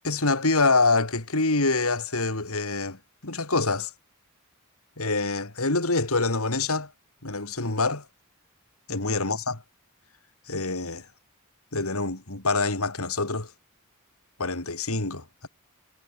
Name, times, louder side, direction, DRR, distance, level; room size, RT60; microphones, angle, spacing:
voice 1, 0.0-3.0 3.2-3.9 5.0-6.9 7.2-8.0 8.9-9.6 10.5-11.1 11.7-13.5 14.4-15.5, left 3 dB, 75° left, 3.4 m, -26 dB
head